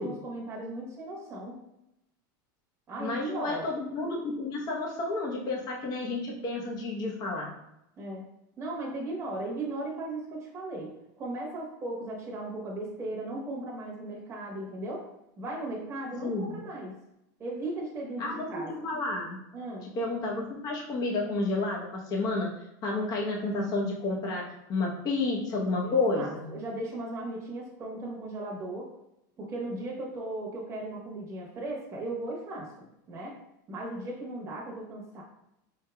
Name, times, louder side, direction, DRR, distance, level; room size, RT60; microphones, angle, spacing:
voice 1, 0.0-1.6 2.9-3.7 8.0-8.2 8.6-10.9 11.2-15.0 15.4-16.9 17.4-18.7 19.5-19.9 25.8-28.9 29.4-32.7 33.1-33.3 33.7-35.2, right 2 dB, 25° right, -4 dB, 1.0 m, -37 dB
voice 2, 3.0-7.5 16.2-16.6 18.2-19.4 19.9-22.5 22.8-24.4 24.7-26.5, left 3 dB, 35° left, -2 dB, 0.9 m, -30 dB
4.4 x 3.4 x 2.2 m, 0.84 s
supercardioid pair, 130°, 11 cm